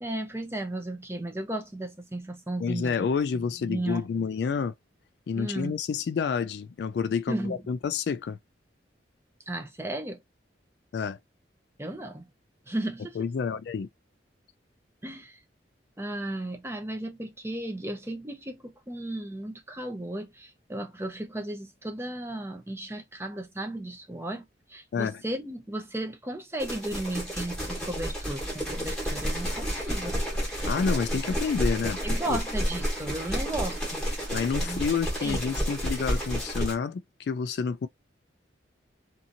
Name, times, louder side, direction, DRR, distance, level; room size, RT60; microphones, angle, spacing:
voice 1, 0.0-3.1 3.3-4.1 5.4-5.8 7.3-7.6 9.5-10.2 11.8-12.2 12.7-13.2 15.0-15.4 16.0-30.2 32.0-34.0 34.6-34.8 35.2-35.4, right 1 dB, 15° right, 0.6 m, -35 dB
voice 2, 2.6-4.7 5.3-8.4 10.9-11.2 13.2-13.9 24.9-25.2 30.7-32.0 32.3-32.4 34.3-37.9, left 6 dB, 60° left, 0.3 m, -29 dB
sound 1, 26.6-36.7, equal, 5° left, 1.2 m, -30 dB
2.7 x 2.6 x 2.5 m
head